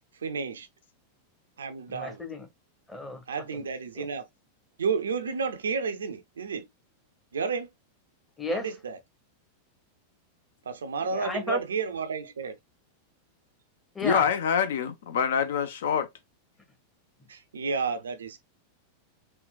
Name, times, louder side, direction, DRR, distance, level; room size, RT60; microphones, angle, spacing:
voice 1, 0.2-0.7 1.6-2.2 3.3-4.3 4.8-6.7 7.3-7.7 8.5-9.0 10.7-12.6 17.3-18.4, right 5 dB, 70° right, 0.4 m, -31 dB
voice 2, 1.9-2.5 2.9-3.2 4.0-4.1 8.4-8.7 11.1-11.6 13.9-14.3, left 1 dB, 10° left, 0.8 m, -33 dB
voice 3, 14.0-16.1, left 7 dB, 60° left, 0.4 m, -25 dB
3.7 x 2.1 x 2.3 m
figure-of-eight pair, 90°, 0 cm